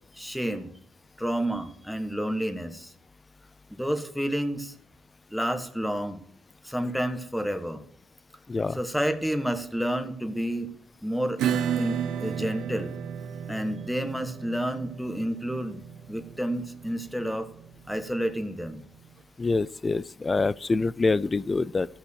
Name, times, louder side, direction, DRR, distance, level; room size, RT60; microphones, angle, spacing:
voice 1, 0.1-0.7 1.2-2.9 3.7-4.7 5.3-6.2 6.6-7.8 8.7-10.7 11.0-12.9 13.5-17.5 17.9-18.8, equal, ahead, 8 dB, 1.3 m, -30 dB
Acoustic guitar / Strum, 11.4-18.6, right 8 dB, 85° right, 0.8 m, -33 dB
voice 2, 19.4-21.9, left 3 dB, 25° left, 21 dB, 0.4 m, -25 dB
13.5 x 5.8 x 6.3 m, 0.64 s
cardioid pair, 90°, 0 cm